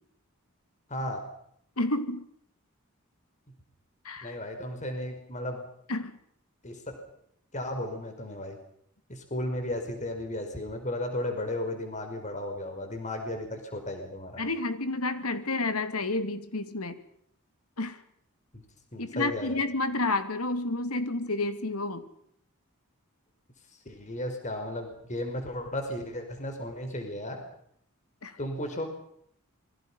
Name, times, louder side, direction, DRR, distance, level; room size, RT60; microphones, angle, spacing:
voice 1, 0.9-1.2 4.2-5.7 6.6-7.0 7.5-8.6 9.1-14.4 18.5-18.6 18.9-19.6 23.9-27.4 28.4-28.9, left 1 dB, 35° left, 5 dB, 5.2 m, -34 dB
voice 2, 1.8-2.3 4.0-4.4 5.9-6.1 14.4-17.0 17.8-18.0 19.0-22.1 28.2-28.4, left 2 dB, 80° left, 10 dB, 2.7 m, -30 dB
27.0 x 23.5 x 5.7 m, 0.69 s
head